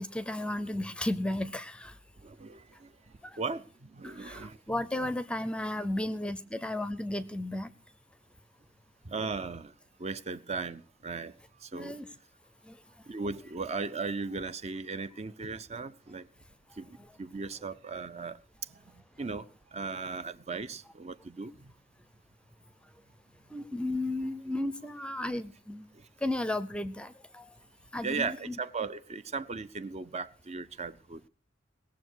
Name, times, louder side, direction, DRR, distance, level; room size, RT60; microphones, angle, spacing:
voice 1, 0.0-2.0 3.2-3.4 4.0-7.7 11.7-12.1 12.6-12.8 17.0-17.1 23.5-25.9 26.2-27.5 27.9-28.6, left 1 dB, 5° left, 0.6 m, -34 dB
voice 2, 2.2-2.9 3.4-4.6 5.0-5.1 9.0-9.7 10.0-11.3 11.6-12.0 13.1-16.3 16.8-18.4 18.7-19.5 19.7-21.5 25.9-26.1 28.0-31.2, right 4 dB, 35° right, 0.6 m, -37 dB
19.5 x 7.1 x 6.2 m
head